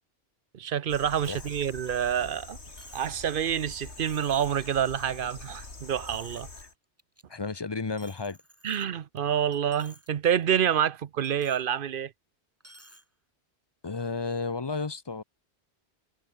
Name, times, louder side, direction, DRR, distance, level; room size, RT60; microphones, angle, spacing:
voice 1, 0.5-2.6 2.9-6.5 8.6-12.1, right 9 dB, 55° right, 0.9 m, -27 dB
sound 1, 0.9-6.7, left 3 dB, 75° left, 3.5 m, -45 dB
Coin (dropping), 1.2-1.6 2.0-2.1 2.8-3.2 3.7-3.8 4.1-4.6 5.1-5.6 5.9-6.6 7.0-7.2 8.0-9.2 9.5-10.1 10.4-10.5 11.2-11.7 12.6-13.0, right 1 dB, 10° right, 3.3 m, -53 dB
voice 2, 7.3-8.4 13.8-15.2, left 4 dB, 25° left, 0.7 m, -32 dB
omnidirectional pair, 1.1 m